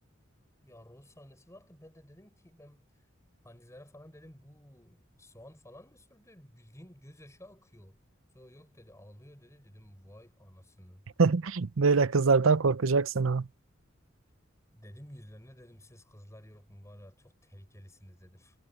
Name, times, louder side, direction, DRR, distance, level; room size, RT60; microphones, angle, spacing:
voice 1, 0.6-2.9 3.4-8.0 8.3-11.0 14.7-18.6, equal, 15° left, 7.2 m, -53 dB
voice 2, 11.2-13.5, right 4 dB, 80° right, 0.7 m, -24 dB
head